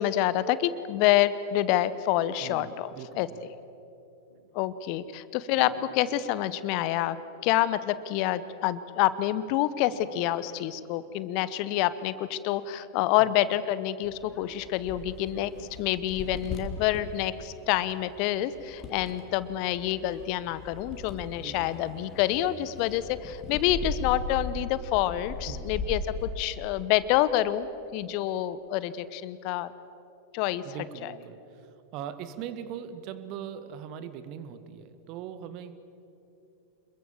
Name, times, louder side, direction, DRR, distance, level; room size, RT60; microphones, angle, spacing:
voice 1, 0.0-3.3 4.5-7.2 7.4-29.7 30.3-30.6 31.0-31.1, left 13 dB, 45° left, 16 dB, 0.9 m, -27 dB
voice 2, 2.4-3.4 13.2-13.3 21.4-21.7 25.4-26.0 30.6-35.7, right 9 dB, 40° right, 11 dB, 1.6 m, -41 dB
sound 1, 4.3-4.6 5.1-5.2 5.5-6.5 7.1-7.8 8.1-8.2 8.7-8.8 9.1-10.9 11.4-11.5, right 2 dB, 85° right, 2.8 m, -49 dB
sound 2, 14.0-26.2, left 2 dB, 30° left, 2.9 m, -39 dB
27.5 x 22.0 x 7.3 m, 2.9 s
figure-of-eight pair, 90°, 0 cm